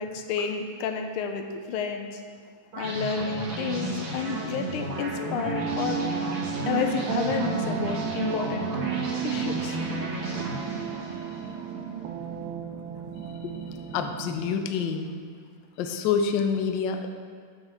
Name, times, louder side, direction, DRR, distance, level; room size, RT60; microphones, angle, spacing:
voice 1, 0.0-2.2 2.8-6.1 6.7-8.7 9.2-9.8, left 6 dB, 90° left, 5 dB, 1.5 m, -30 dB
sound 1, 2.7-11.8, right 1 dB, 65° right, 2.3 m, -33 dB
sound 2, 5.5-14.5, right 8 dB, 90° right, 1.5 m, -33 dB
voice 2, 13.2-15.1 15.8-17.1, left 6 dB, 75° left, 6 dB, 1.2 m, -28 dB
7.3 x 7.1 x 3.5 m, 2.1 s
omnidirectional pair, 2.3 m